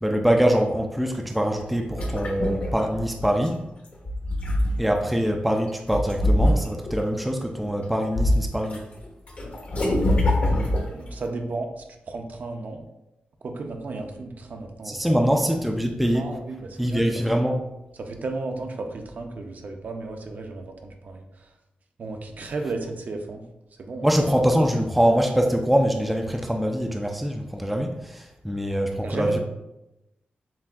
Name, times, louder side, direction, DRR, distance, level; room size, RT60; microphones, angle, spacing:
voice 1, 0.0-3.6 4.8-8.8 14.8-16.3 16.8-17.6 24.0-29.4, equal, ahead, 2 dB, 0.3 m, -23 dB
sound 1, 1.6-3.5 3.9-5.1 5.9-7.0 7.6-8.8 9.0-11.2, left 1 dB, 45° left, 0.8 m, -24 dB
voice 2, 10.9-12.8 13.4-15.3 16.1-17.2 18.0-21.5 22.0-23.4 23.8-24.1 29.0-29.4, right 3 dB, 55° right, 4 dB, 0.5 m, -34 dB
7.2 x 2.4 x 2.3 m, 0.92 s
wide cardioid pair, 140°, 3 cm